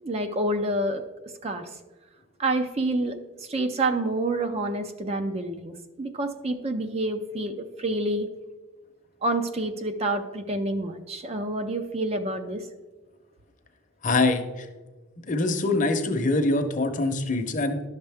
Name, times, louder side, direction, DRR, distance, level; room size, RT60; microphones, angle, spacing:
voice 1, 0.0-1.0 1.4-1.7 2.4-8.3 9.2-12.7, right 2 dB, 30° right, 7 dB, 0.5 m, -28 dB
voice 2, 14.0-14.7 15.2-17.8, left 2 dB, 40° left, 6 dB, 0.8 m, -24 dB
11.5 x 6.6 x 3.4 m, 1.2 s
head